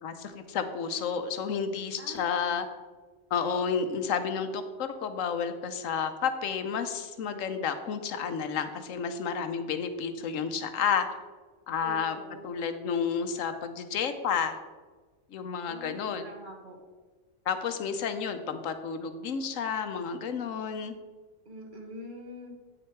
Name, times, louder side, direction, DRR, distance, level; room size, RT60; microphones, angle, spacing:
voice 1, 0.0-2.7 3.3-11.1 11.7-14.6 15.3-16.2 17.5-20.9, left 6 dB, 80° left, 9 dB, 1.1 m, -31 dB
voice 2, 2.0-2.5 11.8-12.5 15.7-16.8 21.4-22.5, equal, 40° right, 1 dB, 1.5 m, -44 dB
8.9 x 6.4 x 4.5 m, 1.3 s
omnidirectional pair, 1.3 m